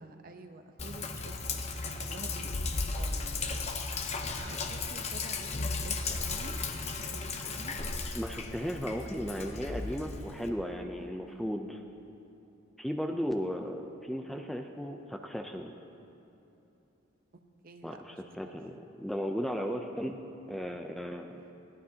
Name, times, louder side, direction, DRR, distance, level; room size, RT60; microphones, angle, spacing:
voice 1, 0.0-3.6 4.3-6.6 7.1-7.8 11.0-11.5 17.6-18.6 21.3-21.5, right 2 dB, 45° right, 6 dB, 0.9 m, -49 dB
Sink (filling or washing), 0.8-10.5, left 3 dB, 35° left, 0.8 m, -35 dB
voice 2, 8.1-11.8 12.8-15.7 17.8-20.2 20.5-21.4, equal, ahead, 3 dB, 0.5 m, -35 dB
21.0 x 16.0 x 2.9 m, 2.9 s
head